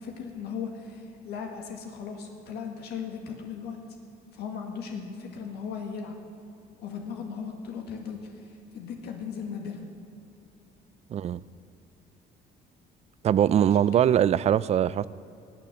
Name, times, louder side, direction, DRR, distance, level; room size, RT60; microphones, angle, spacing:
voice 1, 0.0-3.8 4.3-6.2 6.8-9.8 13.6-14.1, left 6 dB, 75° left, 3 dB, 1.8 m, -37 dB
voice 2, 11.1-11.4 13.2-15.1, right 10 dB, 40° right, 19 dB, 0.4 m, -22 dB
19.0 x 7.5 x 7.9 m, 2.7 s
cardioid pair, 110°, 17 cm